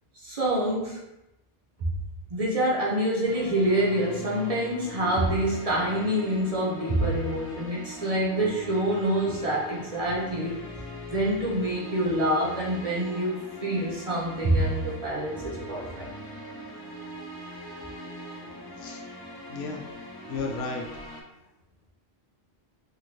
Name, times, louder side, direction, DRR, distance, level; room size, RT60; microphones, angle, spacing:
voice 1, 0.2-1.0 2.3-10.6 11.1-16.1, right 1 dB, 45° right, -4 dB, 0.6 m, -26 dB
sound 1, 3.2-21.2, equal, 35° left, 0.4 m, -41 dB
voice 2, 19.5-19.8 20.3-20.8, left 4 dB, 90° left, 2 dB, 0.8 m, -33 dB
3.0 x 2.8 x 2.6 m, 0.90 s
omnidirectional pair, 1.0 m